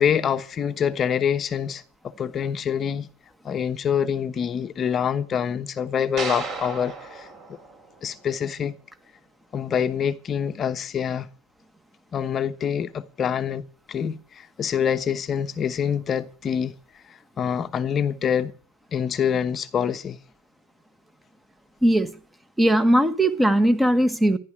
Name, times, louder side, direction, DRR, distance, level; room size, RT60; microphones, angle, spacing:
voice 1, 0.0-1.8 2.2-3.1 3.4-7.6 8.0-8.7 9.5-11.3 12.1-16.7 17.1-18.5 18.9-20.2, left 8 dB, 30° left, 1.1 m, -26 dB
sound 1, 6.2-8.5, right 3 dB, 35° right, 6.4 m, -34 dB
voice 2, 21.8-22.1 22.6-24.4, right 1 dB, 5° right, 1.6 m, -19 dB
14.0 x 11.0 x 7.5 m
hypercardioid pair, 105°, 0 cm